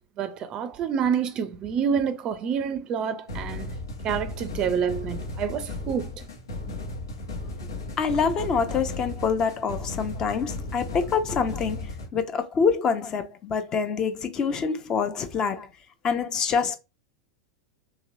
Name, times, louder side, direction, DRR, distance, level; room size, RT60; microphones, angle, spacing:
voice 1, 0.2-3.7 4.0-6.1, right 7 dB, 35° right, 0.4 m, -27 dB
sound 1, 3.3-12.1, left 2 dB, 75° left, 1.0 m, -35 dB
voice 2, 8.0-15.7 16.0-16.8, left 6 dB, 30° left, 0.6 m, -26 dB
3.0 x 2.9 x 2.7 m
figure-of-eight pair, 90°, 2 cm